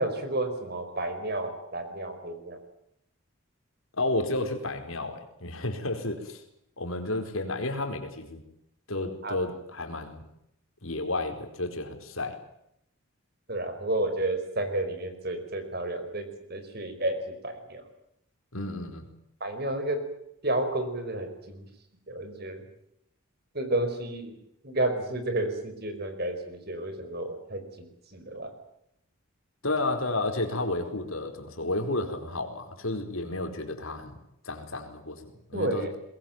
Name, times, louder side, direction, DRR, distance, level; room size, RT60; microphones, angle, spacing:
voice 1, 0.0-2.6 9.2-9.3 13.5-17.8 19.4-20.0 20.4-21.7 22.1-22.6 23.5-24.3 24.6-28.5 35.5-35.9, right 1 dB, 45° right, 8 dB, 5.0 m, -31 dB
voice 2, 4.0-6.4 6.8-8.4 8.9-10.2 10.8-12.4 18.5-19.0 29.6-34.1 34.4-35.2 35.5-35.9, left 2 dB, 75° left, 6 dB, 4.5 m, -31 dB
22.5 x 21.5 x 9.0 m, 0.77 s
head